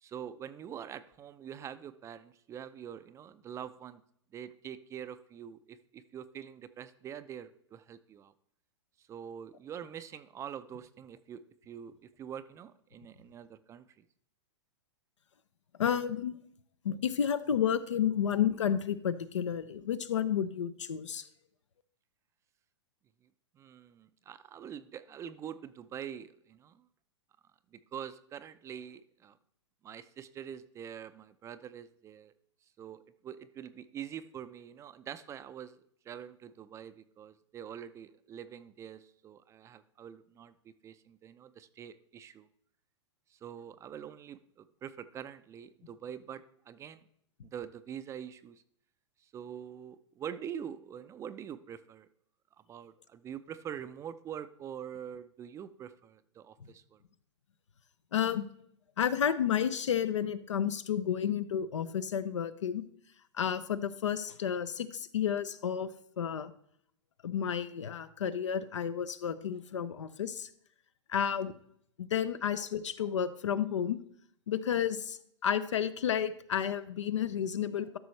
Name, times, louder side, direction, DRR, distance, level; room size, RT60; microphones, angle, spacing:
voice 1, 0.0-4.0 4.3-8.3 9.0-14.0 23.5-26.8 27.7-29.4 29.8-32.3 32.8-35.8 36.0-42.5 43.3-47.1 47.4-48.6 49.2-52.1 52.7-57.0, right 9 dB, 20° right, 13 dB, 0.4 m, -45 dB
voice 2, 15.8-16.4 16.8-21.3 58.1-58.5 59.0-62.8 63.3-65.9 66.2-66.5 67.2-70.5 71.1-71.5 72.1-74.0 74.5-78.0, left 8 dB, 80° left, 14 dB, 0.6 m, -31 dB
12.5 x 6.1 x 3.2 m, 0.68 s
hypercardioid pair, 115°, 15 cm